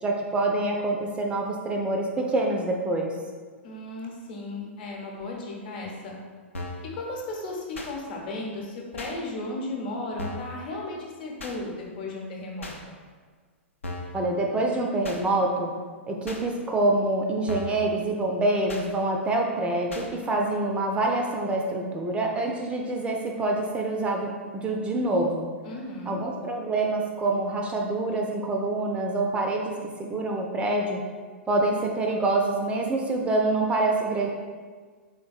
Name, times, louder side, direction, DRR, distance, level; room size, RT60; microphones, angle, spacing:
voice 1, 0.0-3.2 14.1-15.7 16.1-25.5 26.1-31.0 31.5-34.3, right 2 dB, 15° right, 1 dB, 0.3 m, -26 dB
voice 2, 3.6-6.1 6.9-12.7 25.6-26.2, left 2 dB, 55° left, -2 dB, 0.8 m, -35 dB
sound 1, 6.5-6.9 7.7-7.9 9.0-9.1 10.2-10.5 11.4-11.6 12.6-12.8 13.8-14.2 15.0-15.2 16.3-16.4 17.5-17.8 18.7-18.9 19.9-20.1, left 2 dB, 85° left, 0.4 m, -36 dB
3.5 x 3.5 x 2.3 m, 1.5 s
figure-of-eight pair, 100°, 7 cm